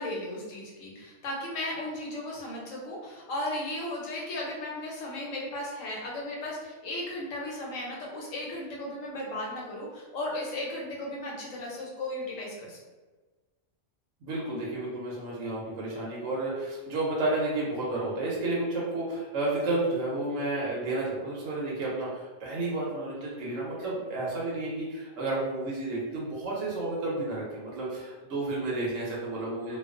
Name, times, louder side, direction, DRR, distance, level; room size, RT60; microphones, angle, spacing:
voice 1, 0.0-12.8, left 1 dB, 80° left, -3 dB, 1.0 m, -35 dB
voice 2, 14.2-29.8, right 2 dB, 75° right, -5 dB, 0.9 m, -31 dB
2.3 x 2.3 x 2.4 m, 1.3 s
omnidirectional pair, 1.4 m